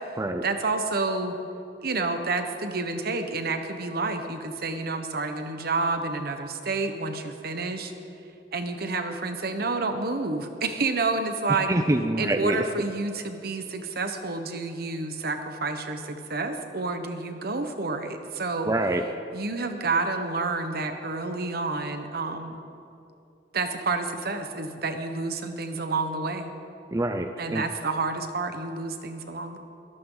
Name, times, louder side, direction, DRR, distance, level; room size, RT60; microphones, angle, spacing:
voice 1, 0.4-1.3 1.8-7.9 8.5-11.7 12.2-18.7 19.3-22.6 23.5-26.5 27.4-29.6, right 3 dB, 55° right, 7 dB, 1.3 m, -29 dB
voice 2, 11.5-12.6 18.6-19.0 26.9-27.6, right 1 dB, 20° right, 6 dB, 0.5 m, -26 dB
22.5 x 14.5 x 4.0 m, 2.7 s
head